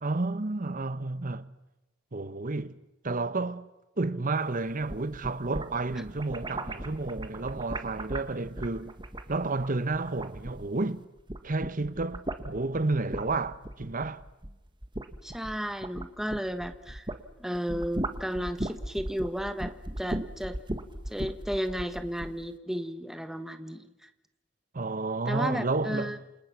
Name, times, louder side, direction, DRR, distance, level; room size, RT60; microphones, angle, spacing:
voice 1, 0.0-1.5 2.1-2.8 3.0-3.7 4.0-8.9 9.3-11.0 11.4-14.2 24.7-26.2, right 3 dB, 45° right, 1.1 m, -31 dB
sound 1, 4.7-10.9 11.2-17.2 17.5-22.4, right 1 dB, 25° right, 1.6 m, -37 dB
voice 2, 15.2-17.1 17.4-19.7 20.0-20.6 21.1-23.9 25.2-26.2, equal, ahead, 1.4 m, -33 dB
29.0 x 27.0 x 6.0 m
head